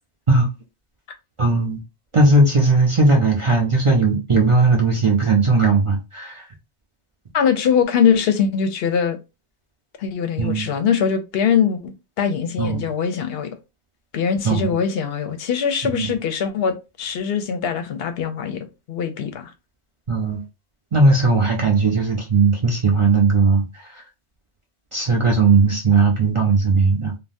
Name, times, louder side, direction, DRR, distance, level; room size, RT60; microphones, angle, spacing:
voice 1, 1.4-1.8 2.1-6.4 10.4-10.7 12.6-12.8 14.4-14.7 15.9-16.1 20.1-20.4 20.9-23.6 24.9-27.2, right 3 dB, 35° right, 0.5 m, -17 dB
voice 2, 7.3-9.2 10.0-13.6 14.1-19.5, left 7 dB, 65° left, 0.8 m, -22 dB
3.4 x 2.2 x 2.6 m
omnidirectional pair, 1.1 m